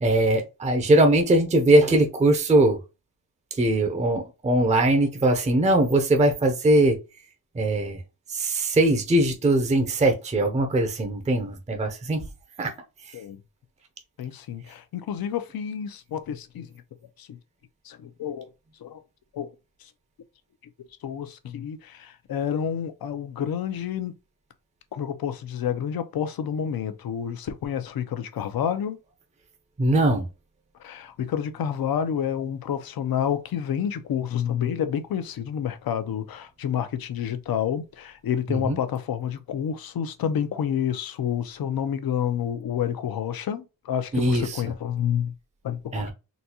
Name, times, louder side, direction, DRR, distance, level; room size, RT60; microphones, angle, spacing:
voice 1, 0.0-2.8 3.5-7.0 7.5-8.0 8.3-12.3 12.6-12.7 13.0-13.2 29.8-30.3 38.5-38.8 44.1-44.6 45.9-46.1, right 1 dB, 20° right, 0.6 m, -21 dB
voice 2, 14.2-16.7 17.2-17.4 17.8-18.5 18.8-19.0 19.3-19.5 19.8-19.9 21.0-24.1 24.9-29.0 30.8-45.3 45.6-46.1, left 9 dB, 75° left, 0.7 m, -29 dB
4.0 x 2.3 x 2.8 m
wide cardioid pair, 150°, 36 cm